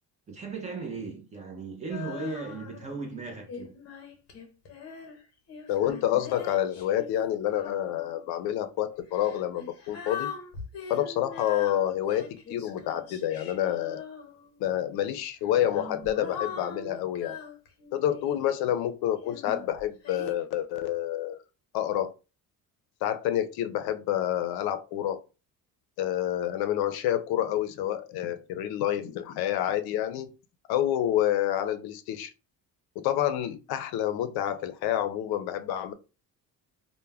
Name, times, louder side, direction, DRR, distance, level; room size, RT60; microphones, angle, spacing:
voice 1, 0.3-3.7, right 4 dB, 20° right, 0.4 m, -37 dB
Female singing, 1.9-3.0 3.5-8.3 9.1-14.6 15.4-18.5 19.2-20.3, left 6 dB, 40° left, 0.6 m, -42 dB
voice 2, 5.7-10.3 10.9-14.0 14.6-17.4 17.9-21.4 21.7-22.1 23.0-25.2 26.0-30.3 30.7-32.3 33.0-35.9, left 11 dB, 85° left, 0.5 m, -28 dB
2.2 x 2.1 x 3.2 m
cardioid pair, 175°, 37 cm